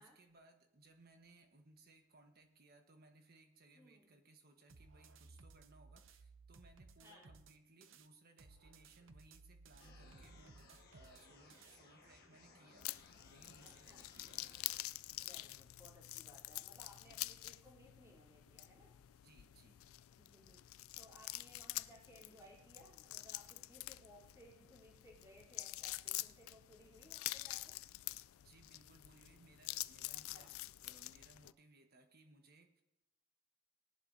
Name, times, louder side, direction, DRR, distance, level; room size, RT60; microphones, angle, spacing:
voice 1, 0.0-14.4 19.2-19.8 28.4-30.6 30.8-32.8, right 2 dB, 45° right, 5 dB, 1.3 m, -65 dB
voice 2, 3.7-4.0 7.0-7.3 13.6-14.1 15.2-18.9 20.2-27.7 30.1-30.6, equal, 15° right, -4 dB, 3.2 m, -62 dB
sound 1, 4.7-8.1 8.4-11.8, right 3 dB, 60° right, 0.7 m, -61 dB
sound 2, 9.8-14.8, left 3 dB, 50° left, 1.4 m, -63 dB
sound 3, 12.8-31.5, left 17 dB, 75° left, 0.3 m, -47 dB
19.0 x 11.0 x 2.7 m, 0.93 s
head